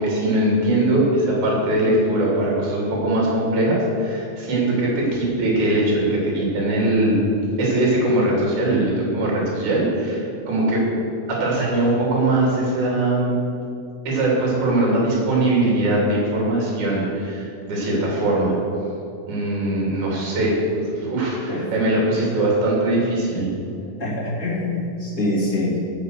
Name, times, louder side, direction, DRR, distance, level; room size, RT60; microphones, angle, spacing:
voice 1, 0.0-7.2 7.6-10.9 11.3-13.3 14.0-18.5 19.3-23.5, right 1 dB, 45° right, -4 dB, 4.3 m, -21 dB
voice 2, 24.0-25.8, left 2 dB, 25° left, -5 dB, 2.0 m, -24 dB
17.5 x 5.8 x 6.6 m, 2.7 s
omnidirectional pair, 4.9 m